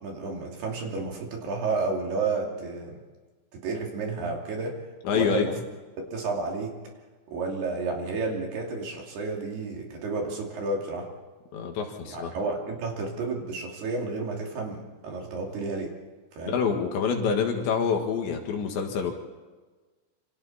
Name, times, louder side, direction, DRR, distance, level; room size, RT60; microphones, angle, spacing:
voice 1, 0.0-3.0 3.5-4.7 5.1-5.5 6.1-6.7 7.3-11.1 12.1-15.9 16.3-16.6, right 3 dB, 55° right, 0 dB, 4.5 m, -31 dB
voice 2, 5.1-5.5 11.5-12.3 16.5-19.1, left 6 dB, 65° left, 3 dB, 3.9 m, -26 dB
28.0 x 26.5 x 4.3 m, 1.3 s
omnidirectional pair, 5.8 m